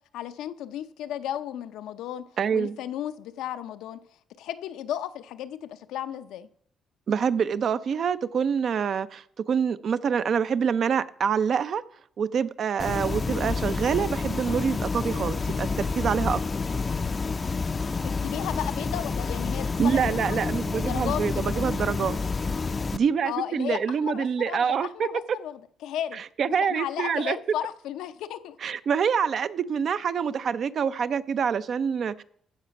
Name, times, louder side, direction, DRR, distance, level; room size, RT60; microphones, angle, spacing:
voice 1, 0.1-2.2 2.5-4.0 4.4-6.5 18.0-20.4 20.7-21.5 23.2-28.6, left 11 dB, 90° left, 0.6 m, -34 dB
voice 2, 2.4-2.8 7.1-11.8 12.2-16.4 19.8-22.2 22.9-25.1 26.1-27.4 28.6-32.2, right 7 dB, 55° right, 0.5 m, -26 dB
sound 1, 12.8-23.0, left 4 dB, 30° left, 0.4 m, -29 dB
14.5 x 5.0 x 5.8 m
cardioid pair, 90°, 0 cm